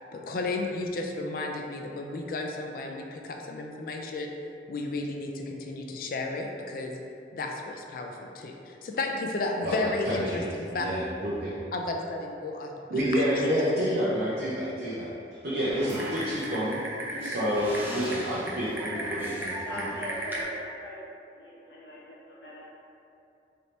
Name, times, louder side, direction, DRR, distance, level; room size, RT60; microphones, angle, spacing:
voice 1, 0.1-4.3 4.7-6.9 7.3-10.9 11.7-13.5, left 2 dB, 50° left, 2 dB, 0.4 m, -33 dB
voice 2, 9.6-10.4 10.7-11.5 12.9-15.1 15.4-16.8 17.2-19.9, equal, 60° right, -8 dB, 0.6 m, -29 dB
Typing, 15.7-20.4, right 1 dB, 10° right, 0.4 m, -35 dB
voice 3, 19.6-21.1 21.4-22.7, equal, 80° left, -7 dB, 1.0 m, -42 dB
3.3 x 2.8 x 4.0 m, 2.6 s
head